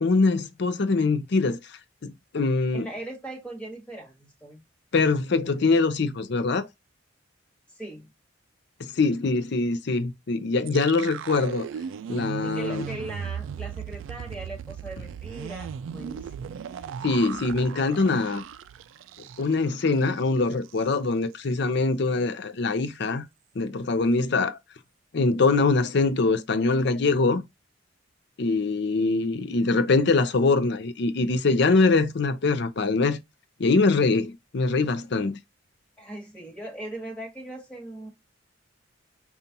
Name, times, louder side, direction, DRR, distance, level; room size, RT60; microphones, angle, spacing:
voice 1, 0.0-2.9 4.9-6.7 8.8-11.7 12.1-12.8 17.0-18.4 19.4-23.3 23.6-24.6 25.1-27.4 28.4-33.2 33.6-35.4, left 3 dB, 60° left, 0.5 m, -23 dB
voice 2, 2.7-4.6 7.7-8.1 12.4-16.6 36.0-38.1, right 1 dB, 5° left, 1.3 m, -39 dB
sound 1, 10.7-19.7 20.0-20.2 20.5-20.9, right 7 dB, 75° right, 0.3 m, -37 dB
5.2 x 2.4 x 2.8 m
head